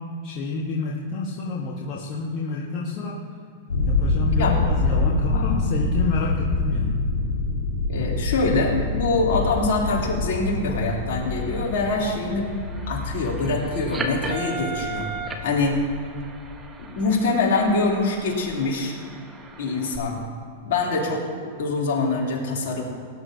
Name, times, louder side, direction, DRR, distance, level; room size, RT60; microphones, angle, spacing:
voice 1, 0.0-3.2 3.9-7.0, left 3 dB, 45° left, -2 dB, 1.5 m, -29 dB
sound 1, 3.7-17.3, left 3 dB, 85° left, 2.0 m, -26 dB
voice 2, 7.9-12.5 12.9-15.1 15.4-15.8 16.8-18.9 19.6-20.2 20.6-22.8, left 3 dB, 65° left, -3 dB, 3.2 m, -24 dB
sound 2, 11.2-20.0, right 3 dB, 20° right, 1.2 m, -37 dB
sound 3, 12.5-15.3, left 3 dB, 55° right, 2.3 m, -39 dB
18.5 x 10.0 x 2.8 m, 2.3 s
hypercardioid pair, 105°, 0 cm